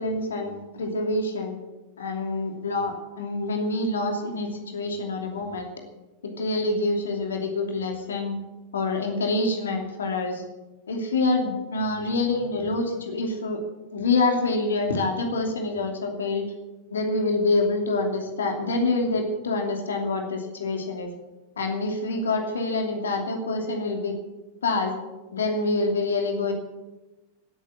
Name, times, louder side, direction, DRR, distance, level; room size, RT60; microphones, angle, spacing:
voice 1, 0.0-1.5 2.0-5.7 6.2-8.4 8.7-10.4 10.9-13.6 13.9-16.5 16.9-21.1 21.6-24.1 24.6-25.0 25.3-26.5, left 3 dB, 70° left, 3 dB, 2.8 m, -26 dB
18.0 x 8.8 x 8.5 m, 1.1 s
figure-of-eight pair, 90°, 0 cm